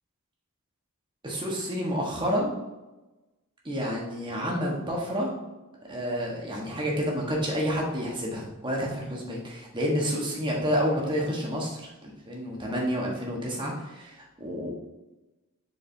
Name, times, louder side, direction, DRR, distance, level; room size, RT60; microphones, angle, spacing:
voice 1, 1.2-2.6 3.6-5.3 5.9-14.7, equal, 20° right, -2 dB, 1.5 m, -29 dB
7.1 x 4.9 x 3.5 m, 1.1 s
head